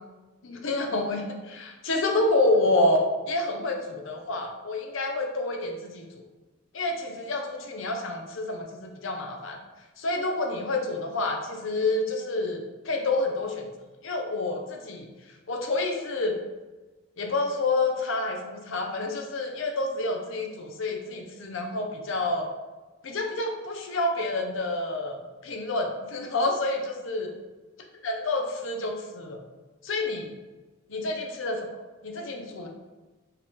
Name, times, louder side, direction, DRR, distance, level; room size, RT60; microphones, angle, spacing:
voice 1, 0.4-6.1 6.7-9.6 10.0-13.7 14.0-15.1 15.5-16.4 17.2-22.5 23.0-27.3 28.0-29.4 29.8-30.3 30.9-31.7 32.0-32.7, left 2 dB, 70° left, 2 dB, 0.7 m, -28 dB
4.8 x 3.0 x 3.6 m, 1.2 s
head